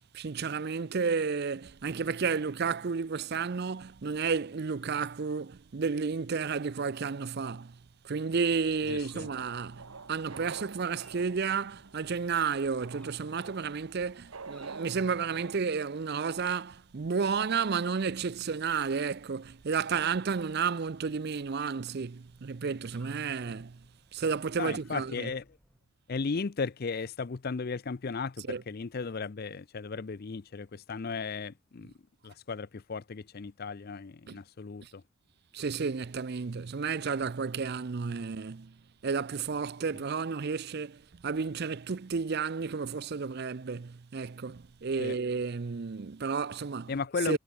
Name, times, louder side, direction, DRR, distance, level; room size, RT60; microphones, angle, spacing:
voice 1, 0.1-7.8 8.0-23.8 24.1-25.3 28.5-28.6 34.3-34.4 34.8-34.9 35.5-38.7 39.0-47.0 47.3-47.4, right 5 dB, 45° right, 0.5 m, -32 dB
sound 1, 8.4-15.6, right 4 dB, 70° right, 1.1 m, -48 dB
sound 2, 8.6-25.8, equal, 5° left, 7.5 m, -65 dB
voice 2, 8.9-9.3 24.6-25.4 26.1-31.9 32.2-35.0 45.0-45.2 46.9-47.4, left 4 dB, 45° left, 0.5 m, -35 dB
head